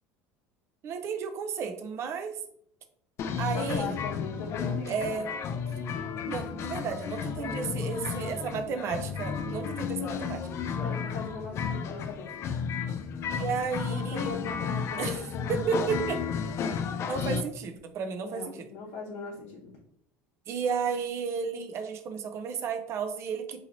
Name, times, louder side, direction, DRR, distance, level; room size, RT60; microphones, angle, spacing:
voice 1, 0.8-2.4 3.4-4.0 4.9-5.3 6.2-10.5 13.4-14.3 15.0-15.2 15.5-16.2 17.1-18.7 20.5-23.6, right 6 dB, 45° right, 7 dB, 0.5 m, -33 dB
sound 1, 3.2-17.4, left 6 dB, 45° left, 0.3 m, -33 dB
voice 2, 3.5-5.3 7.4-8.9 10.8-12.5 13.9-15.5 18.2-19.7, left 4 dB, 80° left, -4 dB, 0.8 m, -39 dB
2.9 x 2.8 x 2.6 m, 0.68 s
supercardioid pair, 120°, 7 cm